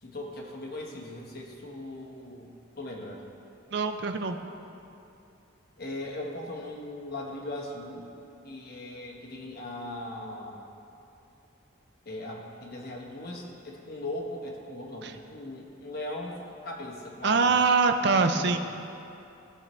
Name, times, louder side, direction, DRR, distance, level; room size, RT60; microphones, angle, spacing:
voice 1, 0.0-3.2 5.8-8.1 8.4-10.6 12.0-17.6 18.4-18.6, left 1 dB, 45° left, -1 dB, 1.2 m, -39 dB
voice 2, 3.7-4.4 15.0-15.1 17.2-18.6, right 4 dB, 55° right, 7 dB, 0.5 m, -23 dB
14.5 x 6.6 x 3.2 m, 2.8 s
head